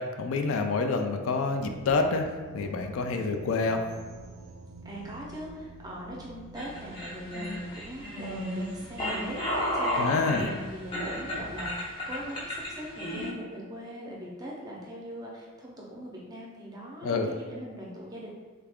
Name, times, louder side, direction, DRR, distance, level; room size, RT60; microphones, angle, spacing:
voice 1, 0.0-3.8 10.0-10.5 17.0-17.3, left 4 dB, 70° left, 5 dB, 0.3 m, -28 dB
sound 1, 1.6-11.7, right 3 dB, 80° right, 0.3 m, -48 dB
voice 2, 4.8-18.3, equal, 20° right, -4 dB, 0.5 m, -41 dB
sound 2, 6.5-13.3, equal, 25° left, 0.6 m, -32 dB
3.3 x 2.4 x 3.4 m, 1.4 s
head